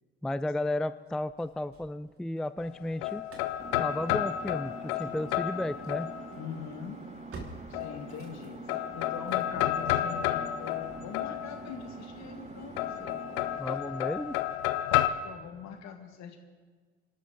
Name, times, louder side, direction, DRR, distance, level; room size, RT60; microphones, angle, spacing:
voice 1, 0.2-3.2 3.8-6.1 13.6-14.4, left 1 dB, ahead, 14 dB, 0.4 m, -33 dB
Engine starting / Slam, 1.1-2.4 2.7-15.8, right 3 dB, 45° right, 3.1 m, -54 dB
sound 1, 2.6-6.6 7.7-8.4 8.7-11.9 12.8-15.1, left 13 dB, 80° left, 0.7 m, -31 dB
Engine, 3.6-13.6, right 3 dB, 20° right, 0.9 m, -46 dB
voice 2, 6.3-7.0 7.7-13.2 15.0-16.4, left 7 dB, 60° left, 5 dB, 2.0 m, -42 dB
25.5 x 12.5 x 4.0 m, 1.5 s
hypercardioid pair, 60°, 31 cm